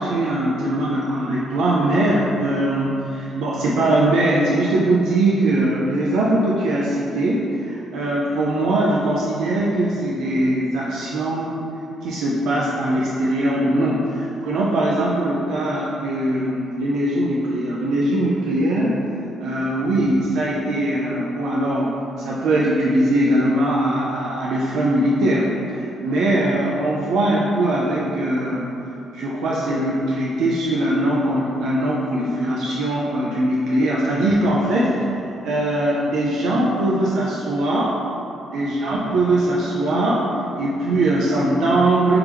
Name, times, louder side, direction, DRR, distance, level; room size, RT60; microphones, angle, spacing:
voice 1, 0.0-11.6 12.0-19.0 19.4-28.7 29.1-38.0 38.5-40.3 40.6-42.2, right 1 dB, 80° right, -5 dB, 0.4 m, -21 dB
3.4 x 3.1 x 3.4 m, 2.7 s
cardioid pair, 90°, 0 cm